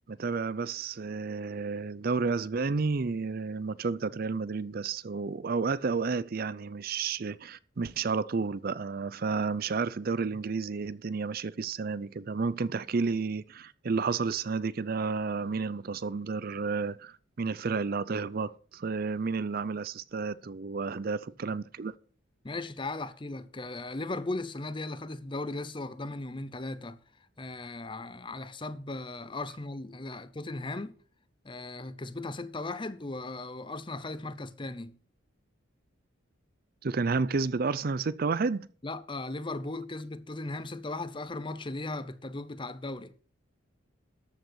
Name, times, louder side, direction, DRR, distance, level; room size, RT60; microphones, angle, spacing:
voice 1, 0.1-21.9 36.8-38.7, right 4 dB, 50° right, 0.5 m, -31 dB
voice 2, 22.4-27.0 27.4-31.0 31.4-35.0 38.8-43.1, left 2 dB, 25° left, 0.7 m, -37 dB
13.0 x 6.6 x 6.3 m
head